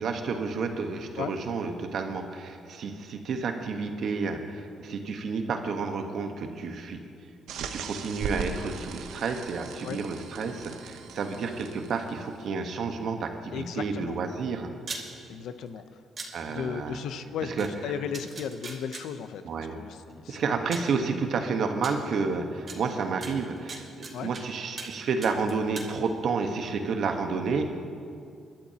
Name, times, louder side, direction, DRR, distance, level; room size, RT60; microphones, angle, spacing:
voice 1, 0.0-7.0 7.6-14.7 16.3-17.0 17.4-17.7 19.4-19.8 20.3-27.7, right 4 dB, 65° right, 5 dB, 1.2 m, -30 dB
sound 1, 7.5-12.3, right 6 dB, 85° right, 0.8 m, -39 dB
voice 2, 13.5-14.2 15.3-15.8 16.5-20.4 24.1-24.3, left 7 dB, 80° left, 11 dB, 0.7 m, -35 dB
sound 2, 14.9-15.0 16.2-16.3 17.6-17.7 18.1-19.0 20.1-20.2 20.7-20.9 21.8-21.9 22.7-22.8 23.2-24.4 24.8-24.9 25.2-25.9, right 4 dB, 45° right, 2.2 m, -38 dB
24.5 x 12.0 x 2.9 m, 2.4 s
cardioid pair, 90°, 0 cm